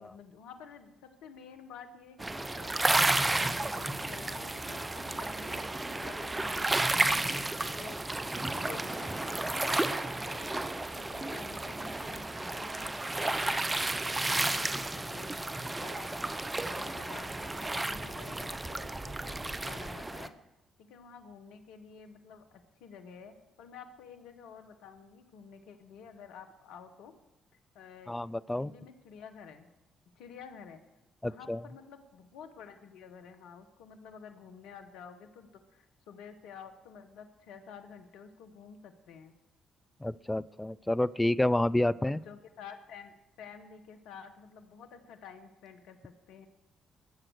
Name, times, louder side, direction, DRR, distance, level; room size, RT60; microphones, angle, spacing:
voice 1, 0.0-3.1 3.4-8.0 8.4-10.5 10.9-16.2 16.6-20.3 20.8-27.1 27.5-28.2 28.5-29.7 30.1-30.8 31.2-39.3 41.9-46.5, left 6 dB, 70° left, 6 dB, 1.2 m, -50 dB
sound 1, 2.2-20.3, right 2 dB, 20° right, 1.0 m, -32 dB
voice 2, 28.1-28.7 31.2-31.6 40.0-42.2, left 1 dB, 10° left, 17 dB, 0.5 m, -29 dB
21.5 x 7.6 x 6.4 m, 0.97 s
hypercardioid pair, 45°, 0 cm